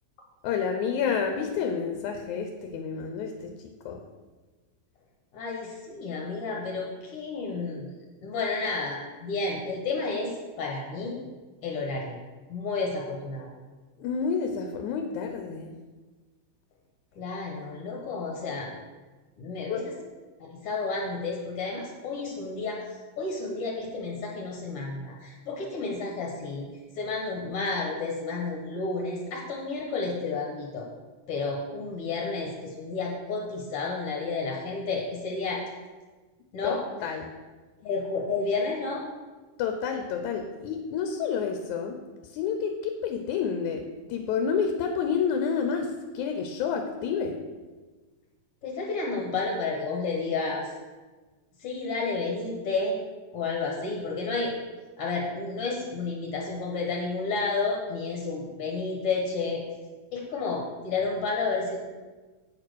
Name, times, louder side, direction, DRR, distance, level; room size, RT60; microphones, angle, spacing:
voice 1, 0.4-4.0 14.0-15.7 19.7-19.8 36.6-37.3 39.6-43.8 44.1-47.4, left 6 dB, 85° left, 5 dB, 2.1 m, -29 dB
voice 2, 5.3-7.9 8.2-11.2 11.6-12.2 12.5-13.5 17.2-18.7 19.4-19.9 20.4-26.7 26.9-30.9 31.3-35.6 36.5-36.8 37.8-39.0 48.6-50.7 51.6-53.0 53.3-54.5 55.0-59.6 60.1-61.8, left 3 dB, 60° left, -1 dB, 2.0 m, -31 dB
8.6 x 5.0 x 6.2 m, 1.3 s
omnidirectional pair, 3.3 m